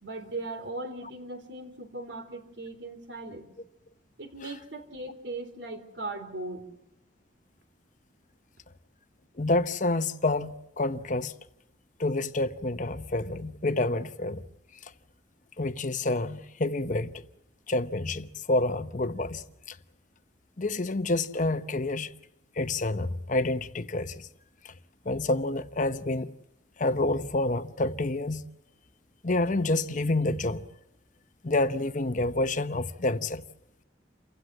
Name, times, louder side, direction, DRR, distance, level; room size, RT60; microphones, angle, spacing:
voice 1, 0.0-3.5 4.2-6.6, right 2 dB, 70° right, 3.7 m, -38 dB
voice 2, 9.4-11.3 12.0-14.4 15.6-17.2 17.7-19.8 20.6-22.1 22.6-24.3 24.6-24.7 25.0-26.3 26.8-28.4 29.2-30.7 31.4-33.4, left 2 dB, 45° left, 0.9 m, -28 dB
29.0 x 16.0 x 7.5 m
head